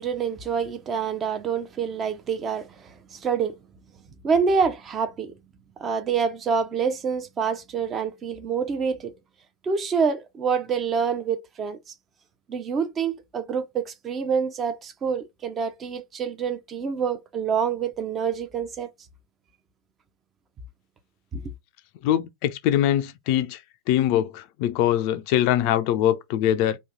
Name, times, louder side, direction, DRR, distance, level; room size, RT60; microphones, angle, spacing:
voice 1, 0.0-3.6 4.2-5.4 5.8-9.1 9.6-11.9 12.5-18.9 21.3-21.5, right 6 dB, 25° right, 0.6 m, -27 dB
voice 2, 22.0-23.6 23.9-26.8, left 11 dB, 45° left, 0.4 m, -23 dB
3.0 x 2.5 x 3.7 m
figure-of-eight pair, 90°, 0 cm